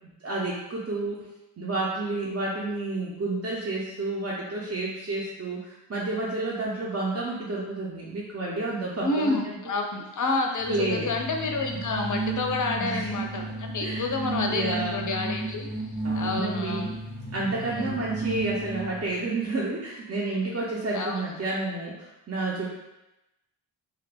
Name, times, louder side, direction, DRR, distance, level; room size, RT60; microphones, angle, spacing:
voice 1, 0.2-1.2 1.6-9.5 10.7-11.1 12.8-13.1 13.8-14.2 14.5-15.1 16.0-16.9 17.3-22.7, right 2 dB, 35° right, -5 dB, 0.4 m, -30 dB
voice 2, 9.0-15.7 16.1-16.9 17.7-18.0 20.9-21.2, left 3 dB, 45° left, 2 dB, 0.5 m, -29 dB
sound 1, 10.6-19.2, right 2 dB, 80° right, 0.8 m, -33 dB
2.4 x 2.1 x 3.3 m, 0.95 s
wide cardioid pair, 55°, 47 cm